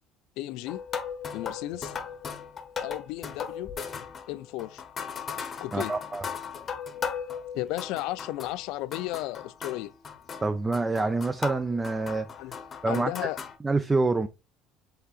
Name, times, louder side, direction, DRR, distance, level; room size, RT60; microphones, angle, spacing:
voice 1, 0.4-0.8 1.3-1.9 2.8-3.7 4.3-4.8 5.6-5.9 7.5-9.9 12.4-12.6 12.9-13.4, left 16 dB, 75° left, 0.3 m, -34 dB
sound 1, 0.7-8.7 8.9-13.6, left 6 dB, 30° left, 0.8 m, -37 dB
voice 2, 5.7-6.3 10.4-12.3 12.8-13.1 13.6-14.3, right 3 dB, 15° right, 0.4 m, -26 dB
5.6 x 3.7 x 2.4 m
cardioid pair, 135°, 0 cm